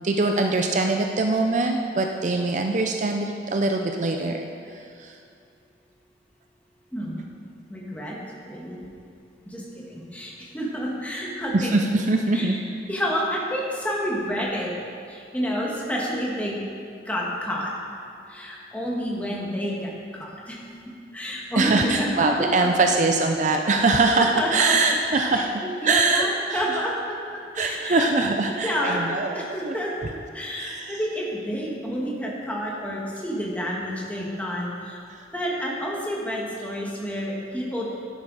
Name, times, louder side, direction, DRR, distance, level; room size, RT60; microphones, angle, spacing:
voice 1, 0.0-5.2 11.5-12.6 21.6-25.5 25.8-26.8 27.6-29.8 30.6-31.0, right 3 dB, 40° right, 4 dB, 0.5 m, -23 dB
voice 2, 7.7-8.2 8.5-8.8 9.4-11.7 12.3-12.6 12.9-14.7 15.1-16.6 17.0-17.7 18.3-20.6 21.1-22.7 24.2-24.7 25.4-25.5 25.8-26.9 27.6-28.1 28.6-29.0 29.3-29.9 30.3-35.0 35.3-37.9, equal, 10° left, -4 dB, 1.7 m, -29 dB
11.0 x 10.5 x 4.1 m, 2.4 s
head